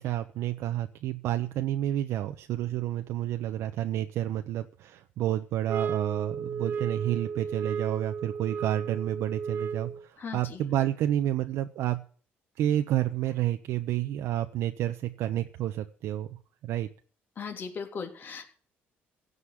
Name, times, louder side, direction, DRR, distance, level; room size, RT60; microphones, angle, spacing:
voice 1, 0.0-12.0 12.6-16.4 16.6-16.9, right 12 dB, 75° right, 7 dB, 1.0 m, -30 dB
sound 1, 5.7-10.1, right 6 dB, 50° right, 1.4 m, -34 dB
voice 2, 10.2-10.6 17.4-18.5, left 5 dB, 45° left, 4 dB, 3.4 m, -38 dB
16.5 x 5.5 x 9.8 m, 0.43 s
cardioid pair, 115°, 5 cm